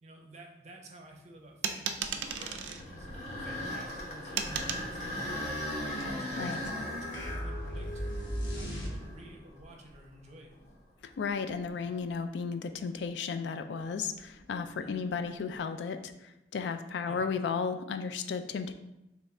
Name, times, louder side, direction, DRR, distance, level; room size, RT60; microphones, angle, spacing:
voice 1, 0.0-3.1 3.4-5.6 6.0-8.2 8.5-10.5 11.8-11.9 14.8-15.1 17.0-17.3, right 1 dB, 40° right, 1 dB, 0.6 m, -51 dB
sound 1, 1.6-2.8 4.4-4.9, right 7 dB, 80° right, 0.4 m, -34 dB
sound 2, 2.0-10.0 10.6-10.7 11.5-11.6 15.1-15.5, left 1 dB, 40° left, 0.8 m, -39 dB
sound 3, 7.1-9.4, equal, 90° left, 0.9 m, -36 dB
voice 2, 11.2-18.7, left 5 dB, 75° left, 8 dB, 0.3 m, -34 dB
3.3 x 3.1 x 3.6 m, 0.91 s
head